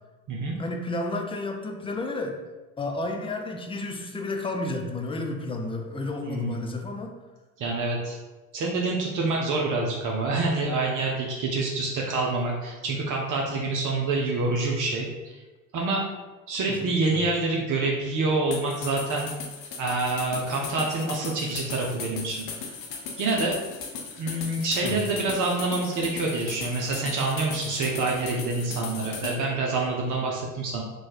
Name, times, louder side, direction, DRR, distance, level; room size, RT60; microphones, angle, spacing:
voice 1, 0.6-2.3 2.8-7.1 16.7-17.2 24.8-24.9, left 2 dB, 15° left, 3 dB, 0.6 m, -31 dB
voice 2, 6.3-6.6 7.6-8.2 8.5-15.4 15.7-16.0 16.5-19.3 19.8-22.5 23.2-23.6 24.2-30.8, right 3 dB, 50° right, -1 dB, 0.8 m, -27 dB
sound 1, 18.5-29.4, left 5 dB, 55° left, 0.9 m, -37 dB
3.1 x 2.3 x 4.3 m, 1.2 s
hypercardioid pair, 70°, 41 cm